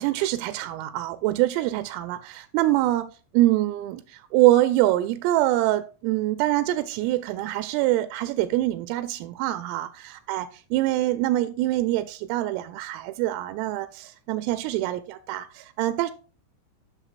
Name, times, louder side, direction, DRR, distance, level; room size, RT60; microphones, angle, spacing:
voice 1, 0.0-16.1, right 15 dB, 85° right, 3.2 m, -25 dB
13.0 x 6.4 x 2.5 m
omnidirectional pair, 5.8 m